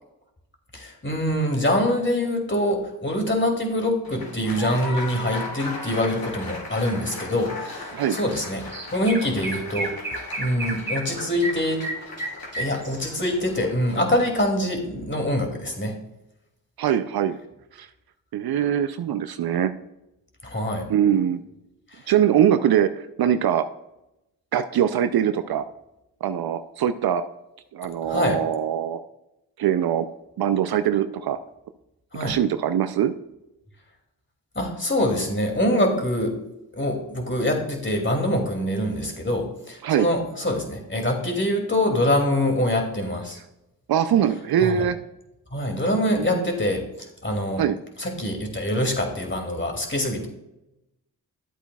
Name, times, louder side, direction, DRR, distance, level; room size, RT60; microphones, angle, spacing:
voice 1, 0.7-9.9 10.4-11.9 12.6-15.9 20.4-20.9 21.9-22.0 28.1-28.4 32.1-32.4 34.5-36.4 36.8-43.4 44.6-44.9 45.5-47.7 48.0-50.3, left 1 dB, 25° left, 2 dB, 2.6 m, -24 dB
Applause, 4.0-14.4, left 3 dB, 55° left, 2.9 m, -38 dB
Chirp tweet, 8.3-8.4 8.7-13.3, right 1 dB, 25° right, 3.1 m, -32 dB
voice 2, 16.8-17.4 17.7-17.9 18.3-19.7 20.9-21.4 22.1-23.6 24.5-25.7 26.2-27.2 27.7-29.0 29.6-30.1 30.4-31.4 32.2-33.1 39.8-40.1 43.9-45.0 46.1-46.5 47.6-47.8, right 9 dB, 60° right, 11 dB, 0.6 m, -22 dB
11.5 x 8.1 x 2.3 m, 0.90 s
supercardioid pair, 45°, 43 cm